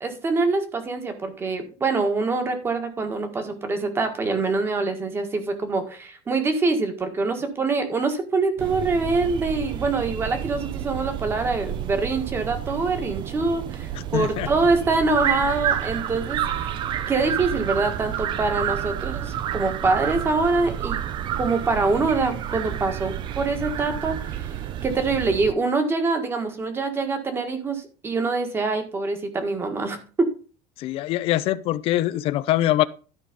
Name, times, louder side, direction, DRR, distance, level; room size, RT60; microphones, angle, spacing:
voice 1, 0.0-16.8 17.1-21.0 21.4-24.5 24.8-30.0, right 3 dB, 20° right, 1.7 m, -25 dB
sound 1, 8.6-25.5, right 10 dB, 40° right, 0.7 m, -30 dB
voice 2, 14.1-14.5 30.8-32.8, left 14 dB, 50° left, 0.6 m, -23 dB
12.5 x 5.0 x 5.2 m
cardioid pair, 165°, 12 cm